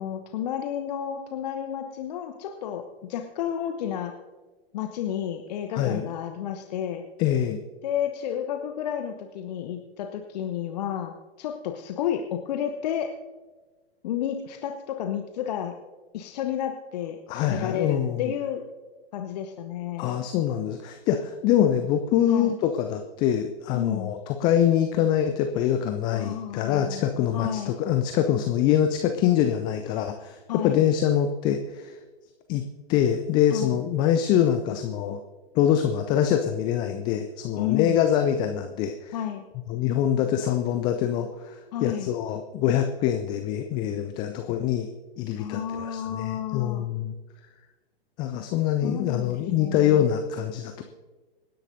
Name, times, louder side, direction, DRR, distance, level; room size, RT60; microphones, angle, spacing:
voice 1, 0.0-4.1 4.7-7.0 7.8-13.1 14.0-15.7 16.1-17.2 17.5-18.6 19.1-20.1 22.3-22.6 23.7-24.1 26.1-27.1 27.3-27.8 30.5-30.8 33.5-33.8 37.6-38.0 39.1-39.5 41.7-42.1 45.4-46.9 48.8-50.1, left 9 dB, 40° left, 5 dB, 0.9 m, -31 dB
voice 2, 5.7-6.1 7.2-7.6 17.3-18.3 20.0-32.0 32.5-32.6 32.9-35.2 35.5-39.2 39.7-44.9 45.2-47.1 48.2-50.8, left 10 dB, 15° left, 7 dB, 0.4 m, -24 dB
26.0 x 10.0 x 2.7 m, 1.3 s
figure-of-eight pair, 110°, 31 cm